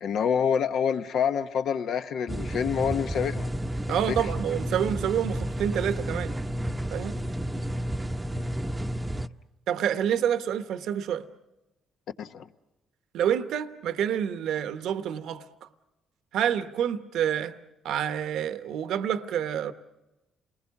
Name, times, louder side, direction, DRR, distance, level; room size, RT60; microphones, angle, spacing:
voice 1, 0.0-3.5 3.9-4.2 12.2-12.5, left 7 dB, 70° left, 0.9 m, -27 dB
sound 1, 2.3-9.3, right 1 dB, 15° right, 0.7 m, -31 dB
voice 2, 3.9-6.3 6.9-7.2 9.7-11.3 13.1-15.7 16.3-17.5 17.8-19.7, right 9 dB, 80° right, 1.0 m, -28 dB
28.5 x 20.0 x 7.2 m
cardioid pair, 90°, 0 cm